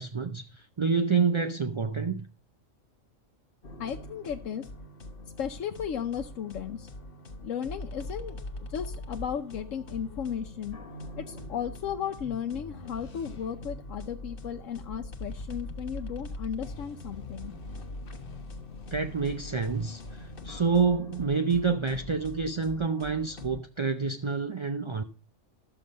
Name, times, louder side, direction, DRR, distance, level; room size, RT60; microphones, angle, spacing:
voice 1, 0.0-2.3 18.9-25.0, right 5 dB, 40° right, 0.4 m, -28 dB
sound 1, 3.6-23.6, left 2 dB, 45° left, 1.2 m, -42 dB
voice 2, 3.8-4.7 5.4-6.9 7.4-8.4 8.7-10.8 11.2-17.5, left 8 dB, 80° left, 1.1 m, -35 dB
13.0 x 6.9 x 5.2 m
omnidirectional pair, 1.3 m